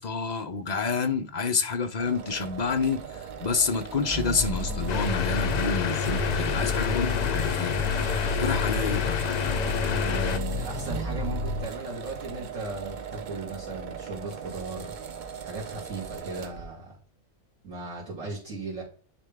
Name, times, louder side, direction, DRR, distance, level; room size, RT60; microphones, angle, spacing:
voice 1, 0.0-8.1 8.4-9.2, left 5 dB, 45° left, 0.6 m, -29 dB
sound 1, 2.0-16.7, right 7 dB, 50° right, 0.6 m, -39 dB
sound 2, 4.1-11.6, left 2 dB, 10° right, 1.6 m, -31 dB
sound 3, 4.9-10.4, left 9 dB, 85° left, 0.3 m, -29 dB
voice 2, 9.9-15.1 15.4-17.0 17.6-18.8, right 3 dB, 85° right, 2.7 m, -36 dB
9.8 x 3.3 x 3.5 m
omnidirectional pair, 1.3 m